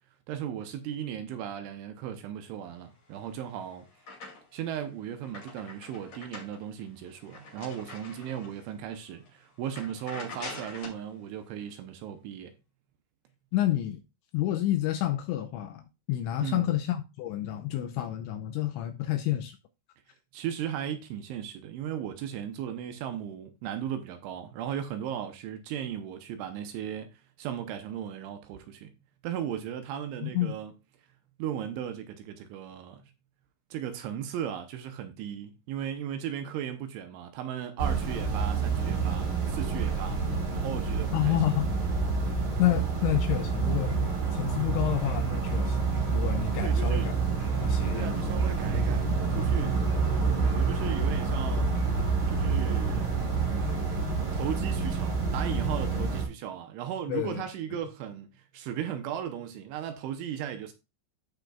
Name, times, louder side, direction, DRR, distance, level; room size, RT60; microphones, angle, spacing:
voice 1, 0.3-3.9 4.5-12.5 16.4-16.7 20.3-28.9 29.2-30.7 31.4-33.0 33.7-40.2 40.5-41.4 46.6-47.1 47.9-49.8 50.4-51.8 52.3-53.1 54.3-60.7, right 9 dB, 80° right, 3.0 m, -36 dB
sound 1, 3.1-4.7 5.0-8.7 9.1-9.3 9.6-11.1, left 3 dB, 40° left, 2.8 m, -45 dB
voice 2, 13.5-14.0 14.3-15.8 16.1-19.6 30.2-30.5 41.1-41.7 42.6-47.1 47.6-48.2 57.1-57.4, left 13 dB, 85° left, 2.7 m, -29 dB
sound 2, 37.8-56.2, right 4 dB, 55° right, 1.4 m, -28 dB
15.5 x 5.2 x 2.3 m
omnidirectional pair, 5.9 m